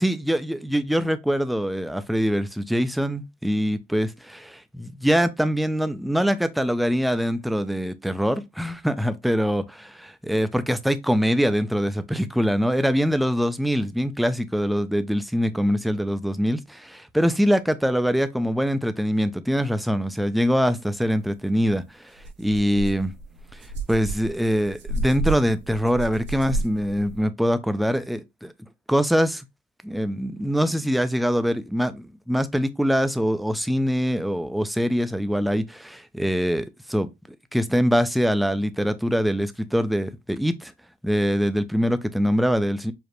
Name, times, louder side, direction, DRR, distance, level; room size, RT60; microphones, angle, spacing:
voice 1, 0.0-23.1 23.5-23.6 23.9-28.5 28.9-29.5 29.8-37.1 37.5-40.7 41.0-42.9, equal, ahead, 0.4 m, -23 dB
sound 1, 21.6-21.7 22.2-27.2, right 2 dB, 65° right, 0.9 m, -31 dB
4.9 x 2.1 x 2.9 m
cardioid pair, 90°, 20 cm